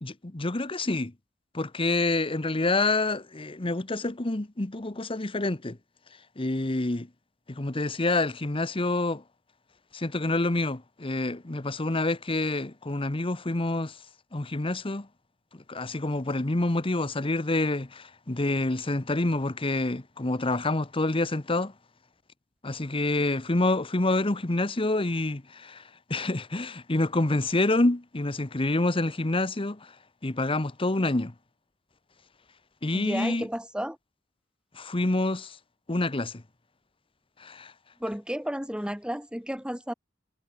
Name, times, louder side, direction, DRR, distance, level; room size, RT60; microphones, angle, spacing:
voice 1, 0.0-1.1 1.5-5.8 6.4-7.1 7.5-9.2 9.9-14.0 14.3-15.1 15.7-21.7 22.6-25.8 26.1-29.9 30.2-31.3 32.8-33.5 34.7-35.6 35.9-36.4 37.4-37.7, left 2 dB, 30° left, 1.1 m, -27 dB
voice 2, 32.9-34.0 38.0-39.9, equal, 5° right, 4.2 m, -32 dB
head